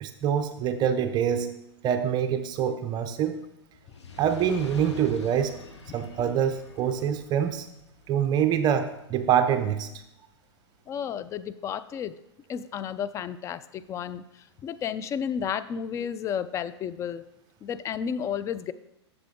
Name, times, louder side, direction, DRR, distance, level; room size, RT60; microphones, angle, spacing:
voice 1, 0.0-1.5 1.8-3.4 4.2-5.6 5.9-7.7 8.1-9.9, right 8 dB, 30° right, 8 dB, 0.5 m, -25 dB
Fire, 3.7-10.2 10.9-11.0, left 4 dB, 80° left, 1.0 m, -46 dB
voice 2, 10.9-12.2 12.5-17.2 17.6-18.7, left 8 dB, 20° left, 14 dB, 0.3 m, -32 dB
7.4 x 7.0 x 3.5 m, 0.84 s
hypercardioid pair, 110°, 15 cm